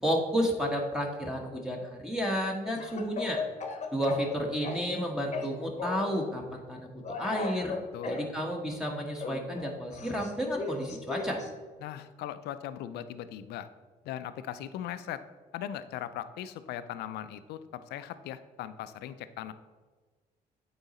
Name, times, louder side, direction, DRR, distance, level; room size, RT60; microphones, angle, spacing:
voice 1, 0.0-3.4 3.9-7.8 8.0-11.4, equal, 5° right, -2 dB, 1.2 m, -31 dB
Speech / Cough, 2.7-5.0 5.3-6.1 7.0-8.3 9.2-11.5, left 4 dB, 45° left, 1.0 m, -37 dB
voice 2, 11.8-13.7 14.0-15.2 15.5-19.5, left 11 dB, 80° left, 12 dB, 0.4 m, -39 dB
9.0 x 3.9 x 4.1 m, 1.4 s
supercardioid pair, 70°, 17 cm